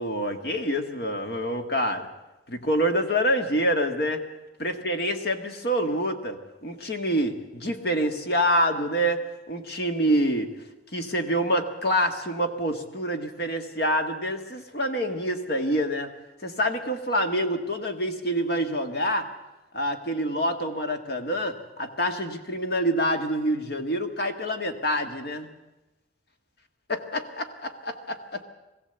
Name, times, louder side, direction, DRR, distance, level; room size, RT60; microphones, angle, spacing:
voice 1, 0.0-2.1 2.5-4.2 4.6-10.5 10.9-16.1 16.4-19.3 19.7-25.5 26.9-28.4, equal, 55° left, 6 dB, 1.8 m, -26 dB
21.5 x 15.5 x 8.1 m, 1.0 s
head